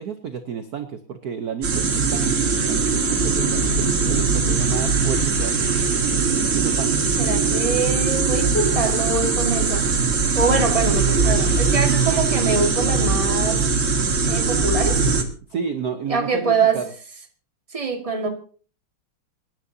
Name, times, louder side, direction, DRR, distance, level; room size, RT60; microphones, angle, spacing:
voice 1, 0.0-5.6 6.5-6.9 10.5-10.7 15.5-16.9, right 7 dB, 55° right, 8 dB, 1.2 m, -31 dB
sound 1, 1.6-15.2, right 4 dB, 40° right, 1.7 m, -21 dB
voice 2, 7.2-9.8 10.3-13.6 14.3-15.0 16.1-16.8 17.7-18.3, right 4 dB, 15° right, 4 dB, 1.7 m, -24 dB
27.5 x 10.5 x 2.8 m, 0.41 s
omnidirectional pair, 2.4 m